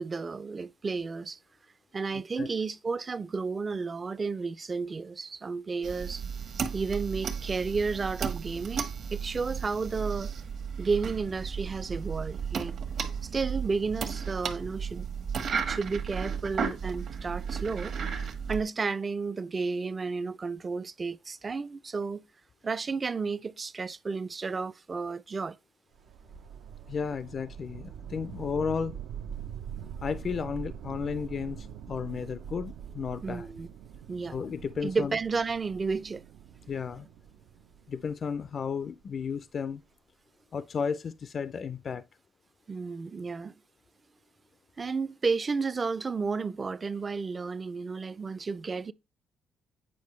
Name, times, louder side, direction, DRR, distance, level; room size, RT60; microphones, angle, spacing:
voice 1, 0.0-1.4 1.9-6.2 6.7-10.3 10.8-12.7 13.2-15.1 15.6-17.9 18.5-22.2 22.6-25.6 33.2-33.7 34.1-34.4 34.8-36.2 42.7-43.6 44.8-48.9, right 4 dB, 35° right, 0.4 m, -32 dB
sound 1, 5.8-18.6, right 6 dB, 60° right, 1.3 m, -34 dB
sound 2, 25.9-39.0, right 8 dB, 85° right, 0.6 m, -44 dB
voice 2, 26.9-28.9 30.0-33.5 34.3-35.2 36.7-37.1 37.9-39.8 40.5-42.0, left 6 dB, 50° left, 0.3 m, -33 dB
8.5 x 4.9 x 3.1 m
cardioid pair, 90°, 0 cm